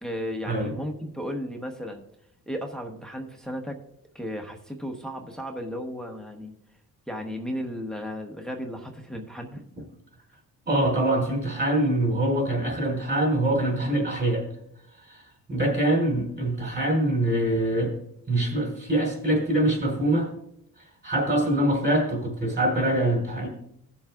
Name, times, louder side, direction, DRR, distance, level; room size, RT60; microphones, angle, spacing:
voice 1, 0.0-2.0 2.5-3.8 4.1-6.5 7.1-9.6, equal, ahead, 2 dB, 1.0 m, -34 dB
voice 2, 10.7-14.4 15.1-15.2 15.5-17.9 18.3-20.3 21.0-23.5, right 1 dB, 35° right, 1 dB, 4.4 m, -24 dB
18.0 x 7.2 x 2.4 m, 0.75 s
cardioid pair, 130°, 32 cm